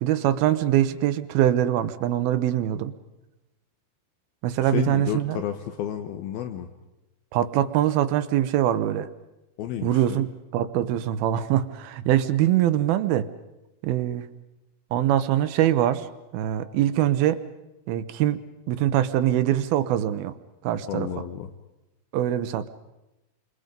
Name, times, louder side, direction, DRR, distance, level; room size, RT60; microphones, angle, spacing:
voice 1, 0.0-2.9 4.4-5.4 7.3-9.1 9.8-10.3 10.5-13.3 13.8-14.3 14.9-16.1 16.3-17.4 17.9-18.4 18.7-20.3 20.6-21.1 22.1-22.7, right 12 dB, 75° right, 10 dB, 2.7 m, -23 dB
voice 2, 4.6-6.7 9.6-10.3 20.9-21.5, left 10 dB, 75° left, 7 dB, 2.8 m, -31 dB
29.0 x 26.0 x 5.3 m, 0.96 s
omnidirectional pair, 4.5 m